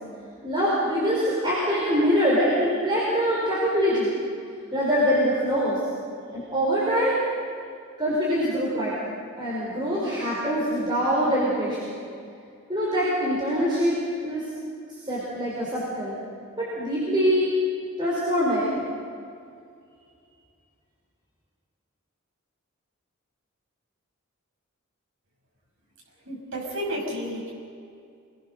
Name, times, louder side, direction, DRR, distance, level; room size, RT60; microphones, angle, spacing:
voice 1, 0.4-4.1 4.7-5.8 6.3-7.2 8.0-11.9 12.7-14.0 14.2-14.5 14.9-16.1 16.6-17.5 18.0-18.8, equal, 20° right, -7 dB, 4.7 m, -24 dB
voice 2, 26.3-27.5, equal, 65° right, -2 dB, 6.6 m, -31 dB
26.5 x 21.0 x 6.6 m, 2.4 s
head